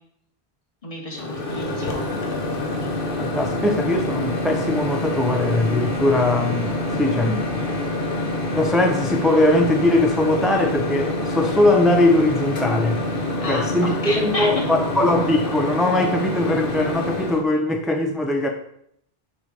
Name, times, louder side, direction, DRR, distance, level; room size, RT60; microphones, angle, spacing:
voice 1, 0.8-2.1 13.4-14.7, left 1 dB, 35° left, 1.6 m, -30 dB
Microwave oven, 1.1-17.4, left 2 dB, 60° left, 1.3 m, -26 dB
voice 2, 3.2-7.5 8.5-13.0 13.5-18.5, left 1 dB, ahead, 0.4 m, -20 dB
5.7 x 4.8 x 5.2 m
omnidirectional pair, 1.0 m